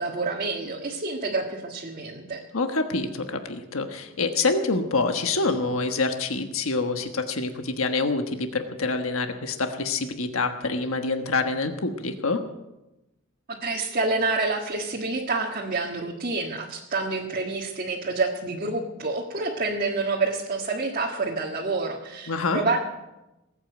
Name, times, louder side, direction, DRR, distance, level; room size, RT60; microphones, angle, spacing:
voice 1, 0.0-2.4 13.5-22.8, right 3 dB, 45° right, -2 dB, 1.7 m, -28 dB
voice 2, 2.5-12.4 22.3-22.6, left 3 dB, 90° left, 6 dB, 1.3 m, -26 dB
19.5 x 8.8 x 8.0 m, 0.99 s
head